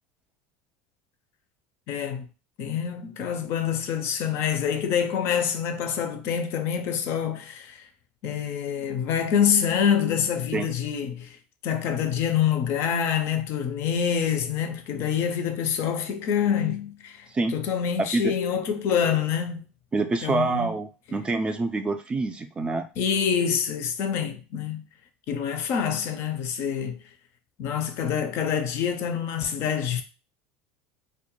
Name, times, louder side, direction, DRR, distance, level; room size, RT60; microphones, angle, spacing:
voice 1, 1.9-2.3 2.6-7.9 8.2-11.4 11.6-19.6 20.2-20.7 23.0-24.8 25.3-27.0 27.6-30.0, left 8 dB, 55° left, 0.5 m, -26 dB
voice 2, 19.9-22.9, right 3 dB, 20° right, 0.3 m, -26 dB
2.3 x 2.1 x 2.9 m
supercardioid pair, 100°, 5 cm